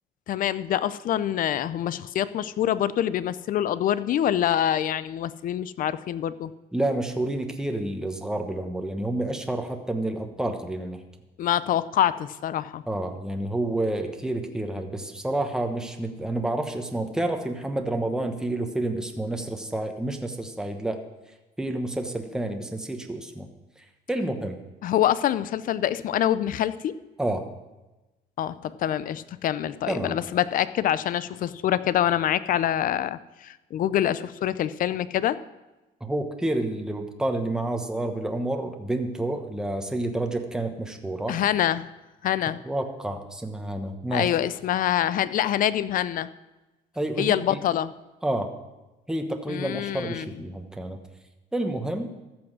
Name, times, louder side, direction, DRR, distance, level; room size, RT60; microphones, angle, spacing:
voice 1, 0.3-6.5 11.4-12.8 24.8-26.9 28.4-35.4 41.3-41.9 42.2-42.6 44.1-46.3 47.2-47.9 49.5-50.3, left 11 dB, 55° left, 16 dB, 0.5 m, -25 dB
voice 2, 6.7-11.0 12.9-21.0 21.6-23.5 24.1-24.6 27.2-27.5 29.9-30.1 36.0-41.4 42.6-44.3 47.0-47.6 48.2-48.5 49.1-51.0 51.5-52.1, right 1 dB, 5° right, 4 dB, 1.1 m, -29 dB
14.0 x 6.1 x 6.1 m, 1.1 s
cardioid pair, 110°, 17 cm